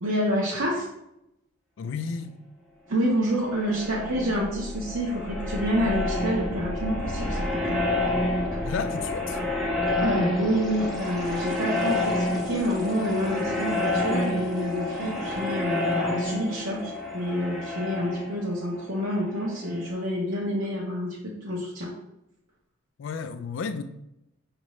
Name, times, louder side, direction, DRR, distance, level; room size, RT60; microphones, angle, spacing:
voice 1, 0.0-0.9 2.9-7.8 10.0-21.9, equal, 75° right, 0.8 m, -28 dB
voice 2, 1.8-2.4 8.6-9.4 23.0-23.8, left 5 dB, 65° left, 0.3 m, -32 dB
sound 1, 3.3-19.9, left 1 dB, ahead, 0.6 m, -29 dB
5.2 x 2.5 x 3.0 m
head